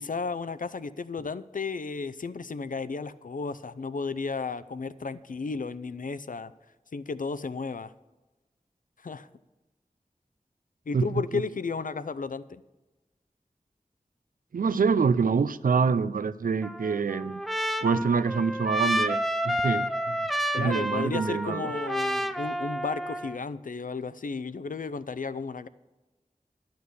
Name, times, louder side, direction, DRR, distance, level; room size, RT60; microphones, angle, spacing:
voice 1, 0.0-6.5 6.9-7.9 9.0-9.3 10.9-12.6 20.5-25.7, left 4 dB, 75° left, 15 dB, 0.5 m, -33 dB
voice 2, 14.5-17.4 17.8-20.2 20.6-21.7, right 5 dB, 80° right, 16 dB, 0.4 m, -26 dB
Trumpet, 16.6-23.4, equal, ahead, 0.5 m, -30 dB
11.0 x 6.5 x 6.8 m, 1.1 s
wide cardioid pair, 45°, 14 cm